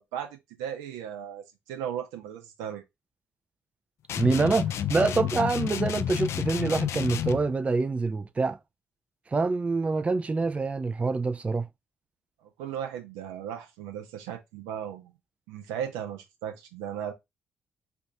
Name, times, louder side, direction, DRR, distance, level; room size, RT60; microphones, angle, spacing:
voice 1, 0.0-2.8 12.4-15.1 15.5-17.1, right 9 dB, 70° right, 0.7 m, -36 dB
sound 1, 4.1-7.5, left 10 dB, 55° left, 0.3 m, -30 dB
voice 2, 4.1-8.6 9.3-11.7, right 3 dB, 20° right, 0.3 m, -26 dB
4.4 x 2.5 x 2.2 m
figure-of-eight pair, 40°, 6 cm